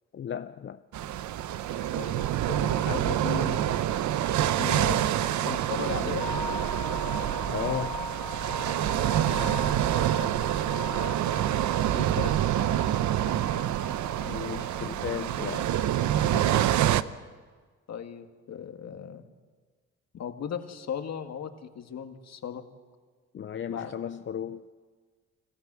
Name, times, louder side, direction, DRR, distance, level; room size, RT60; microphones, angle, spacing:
voice 1, 0.1-0.8 7.5-8.0 14.3-15.7 16.3-17.0 23.3-24.6, left 8 dB, 40° left, 0.6 m, -35 dB
sound 1, 0.9-17.0, right 11 dB, 70° right, 0.8 m, -27 dB
voice 2, 1.9-3.9 4.5-6.3 9.2-9.9 11.9-12.4 17.9-19.3 20.1-22.6 23.7-24.0, left 7 dB, 60° left, 1.8 m, -37 dB
sound 2, 6.2-16.8, left 3 dB, 10° left, 0.9 m, -40 dB
26.0 x 14.0 x 7.5 m
cardioid pair, 90°, 30 cm